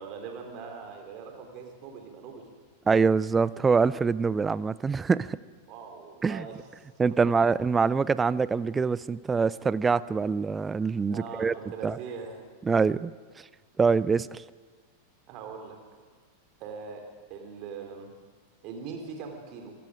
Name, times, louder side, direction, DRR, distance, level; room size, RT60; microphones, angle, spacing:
voice 1, 0.0-2.5 5.7-6.6 11.1-12.4 15.3-15.8 16.6-17.0 17.3-18.1 18.6-19.7, right 5 dB, 40° right, 4 dB, 4.0 m, -41 dB
voice 2, 2.9-5.4 6.2-6.5 7.0-11.5 11.8-12.0 12.7-13.1 13.8-14.4, right 5 dB, 15° right, 19 dB, 0.5 m, -24 dB
25.0 x 21.0 x 5.1 m, 1.6 s
figure-of-eight pair, 90°, 0 cm